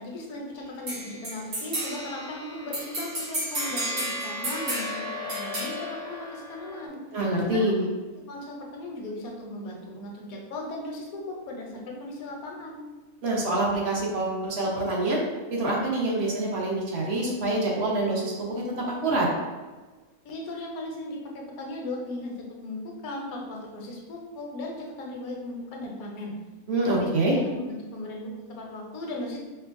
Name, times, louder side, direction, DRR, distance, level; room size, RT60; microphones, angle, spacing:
voice 1, 0.0-7.0 7.5-7.8 8.3-12.8 20.2-26.3 26.9-29.4, left 1 dB, 75° left, -1 dB, 1.1 m, -37 dB
sound 1, 0.9-6.9, equal, 75° right, 1.7 m, -33 dB
voice 2, 7.1-7.9 13.2-15.2 15.5-19.3 26.7-27.3, right 2 dB, 55° right, -2 dB, 0.8 m, -26 dB
4.5 x 2.0 x 2.5 m, 1.3 s
omnidirectional pair, 1.5 m